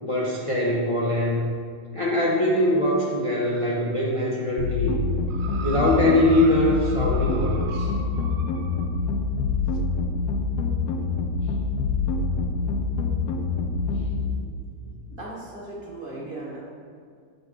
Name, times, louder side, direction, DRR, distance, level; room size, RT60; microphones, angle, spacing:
voice 1, 0.0-1.5 1.9-5.0 5.6-7.9 12.2-12.4 13.9-14.4, left 1 dB, 40° left, -5 dB, 0.5 m, -23 dB
sound 1, 4.6-14.2, left 4 dB, 80° left, 1.1 m, -26 dB
sound 2, 5.3-8.9 9.8-9.9, right 5 dB, 70° right, 1.1 m, -39 dB
voice 2, 15.1-16.6, right 2 dB, 35° right, -5 dB, 1.3 m, -37 dB
6.8 x 4.1 x 4.8 m, 2.2 s
omnidirectional pair, 1.8 m